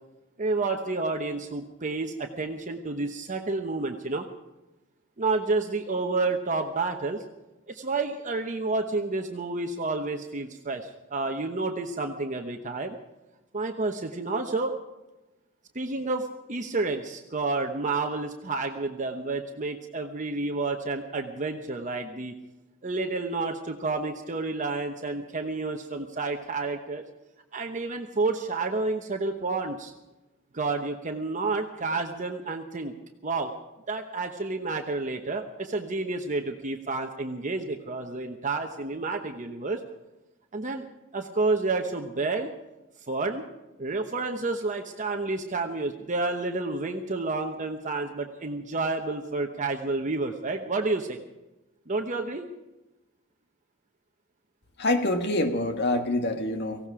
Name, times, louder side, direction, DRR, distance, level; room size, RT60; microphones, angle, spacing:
voice 1, 0.4-4.3 5.2-7.2 7.7-13.0 13.5-14.7 15.7-22.3 22.8-27.0 27.5-29.9 30.5-32.9 33.2-33.5 33.9-39.8 40.5-40.9 41.1-42.5 43.1-43.4 43.8-51.2 51.9-52.5, right 3 dB, 35° right, 4 dB, 1.0 m, -30 dB
voice 2, 54.8-56.8, left 1 dB, 50° left, 7 dB, 1.7 m, -26 dB
18.0 x 16.0 x 4.9 m, 1.0 s
head